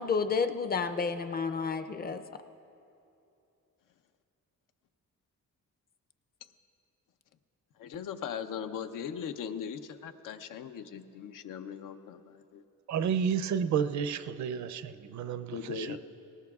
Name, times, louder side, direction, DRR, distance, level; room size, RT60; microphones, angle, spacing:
voice 1, 0.0-2.2, left 5 dB, 30° left, 8 dB, 0.5 m, -30 dB
voice 2, 7.8-12.6 15.5-16.0, left 7 dB, 80° left, 9 dB, 0.7 m, -39 dB
voice 3, 12.9-16.0, right 7 dB, 65° right, 11 dB, 0.5 m, -31 dB
19.0 x 18.0 x 2.4 m, 2.7 s
cardioid pair, 135°, 32 cm